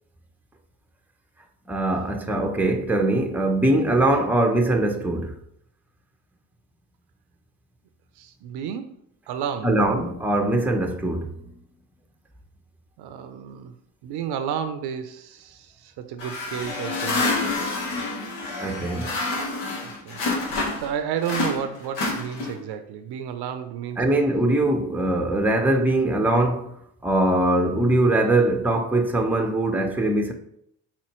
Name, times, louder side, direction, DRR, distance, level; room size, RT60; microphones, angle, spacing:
voice 1, 1.7-5.4 9.6-11.4 18.6-19.1 24.0-26.7 27.0-30.3, right 1 dB, 5° right, 0.6 m, -22 dB
voice 2, 8.2-9.0 9.3-9.7 13.0-13.7 14.0-17.4 19.8-20.2 20.8-24.0, right 8 dB, 60° right, 0.6 m, -32 dB
sound 1, 16.2-20.9 21.2-22.7, left 3 dB, 75° left, 1.3 m, -28 dB
4.2 x 4.2 x 3.0 m
hypercardioid pair, 60°, 45 cm